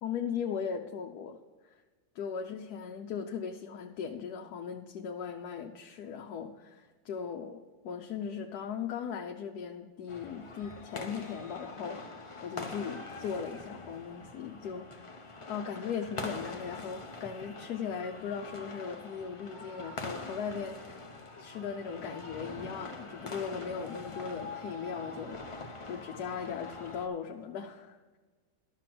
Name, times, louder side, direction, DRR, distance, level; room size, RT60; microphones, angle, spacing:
voice 1, 0.0-1.4 2.1-15.2 15.5-21.0 21.4-28.2, left 7 dB, 75° left, 3 dB, 1.2 m, -38 dB
sound 1, 10.1-27.1, left 2 dB, 30° left, 0.6 m, -44 dB
12.0 x 6.7 x 5.9 m, 1.4 s
omnidirectional pair, 1.7 m